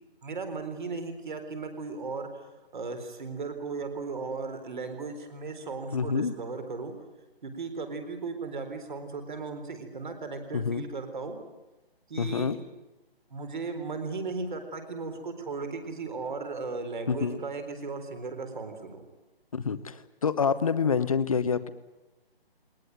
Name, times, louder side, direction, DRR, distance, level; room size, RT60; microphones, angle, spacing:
voice 1, 0.2-6.9 7.4-11.4 12.1-12.6 13.3-19.0, right 4 dB, 50° right, 7 dB, 4.1 m, -36 dB
voice 2, 5.9-6.3 10.5-10.8 12.2-12.6 17.1-17.4 19.5-21.7, left 6 dB, 35° left, 12 dB, 1.0 m, -27 dB
21.5 x 20.0 x 9.5 m, 1.0 s
hypercardioid pair, 170°, 31 cm